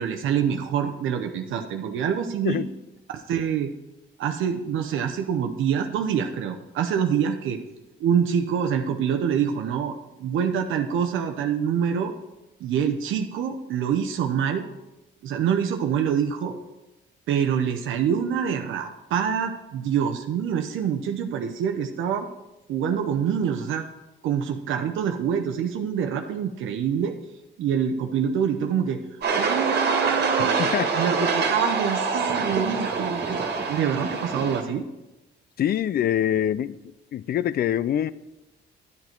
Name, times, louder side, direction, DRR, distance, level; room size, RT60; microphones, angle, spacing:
voice 1, 0.0-2.6 3.1-3.7 4.2-7.6 8.0-12.1 12.6-14.7 15.2-16.6 17.3-22.3 22.7-23.8 24.2-27.1 27.6-29.0 29.3-30.6 31.0-34.8, right 8 dB, 80° right, 4 dB, 0.7 m, -26 dB
sound 1, 29.2-34.6, right 4 dB, 55° right, 1.7 m, -25 dB
voice 2, 30.4-30.9 35.6-38.1, left 10 dB, 50° left, 18 dB, 0.4 m, -25 dB
9.6 x 9.5 x 4.4 m, 1.0 s
cardioid pair, 90°, 20 cm